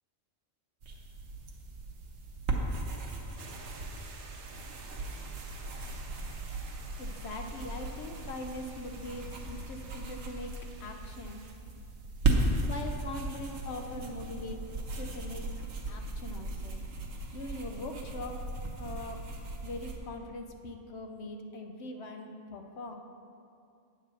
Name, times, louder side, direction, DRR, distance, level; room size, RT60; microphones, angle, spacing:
sound 1, 0.8-20.0, right 2 dB, 85° right, 1.3 m, -36 dB
sound 2, 3.4-11.5, right 4 dB, 65° right, 1.0 m, -52 dB
voice 1, 7.0-10.5 10.8-11.4 12.6-15.4 15.9-16.8 17.3-18.5 18.8-19.2 19.6-23.0, left 2 dB, 60° left, 4 dB, 0.9 m, -41 dB
8.5 x 4.7 x 7.0 m, 2.5 s
omnidirectional pair, 1.3 m